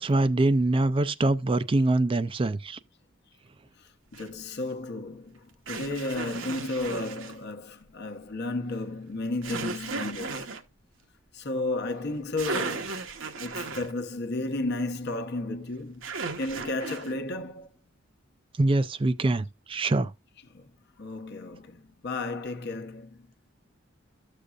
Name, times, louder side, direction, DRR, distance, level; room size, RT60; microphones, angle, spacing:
voice 1, 0.0-2.8 18.6-20.1, right 2 dB, 25° right, 0.4 m, -24 dB
voice 2, 3.8-10.6 11.3-13.1 13.3-17.7 20.5-20.7 21.0-23.3, left 2 dB, 60° left, 0.9 m, -33 dB
sound 1, 4.1-4.3 5.7-7.4 9.4-10.6 12.1-12.2 12.4-13.9 16.0-17.1, right 4 dB, 75° right, 1.0 m, -35 dB
12.5 x 6.7 x 2.4 m
head